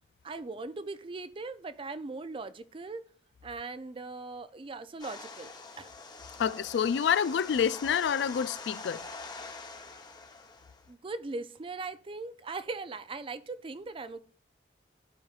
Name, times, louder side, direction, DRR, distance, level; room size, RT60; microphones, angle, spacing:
voice 1, 0.2-3.0 3.4-5.9 10.9-14.2, right 3 dB, 30° right, 0.4 m, -39 dB
sound 1, 5.0-10.9, left 4 dB, 25° left, 0.9 m, -45 dB
voice 2, 6.4-9.0, left 7 dB, 70° left, 0.3 m, -28 dB
12.5 x 4.8 x 2.4 m
head